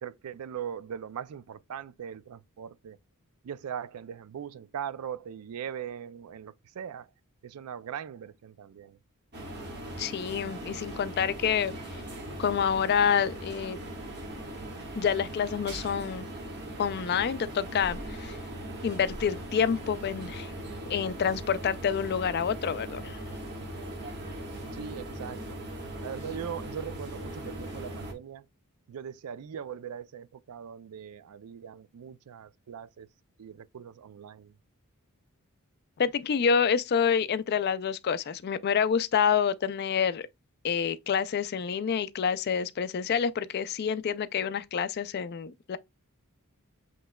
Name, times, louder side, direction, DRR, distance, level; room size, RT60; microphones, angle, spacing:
voice 1, 0.0-3.0 3.4-7.1 7.4-9.0 24.7-25.6 26.0-28.5 28.9-33.1 33.4-34.6, right 8 dB, 85° right, 0.4 m, -40 dB
sound 1, 9.3-28.1, right 1 dB, 50° right, 1.4 m, -39 dB
voice 2, 10.0-11.8 12.4-13.8 15.0-16.2 16.8-18.4 18.8-20.5 20.9-23.2 36.0-40.3 40.6-45.8, left 7 dB, 45° left, 0.4 m, -28 dB
7.7 x 3.0 x 2.2 m
head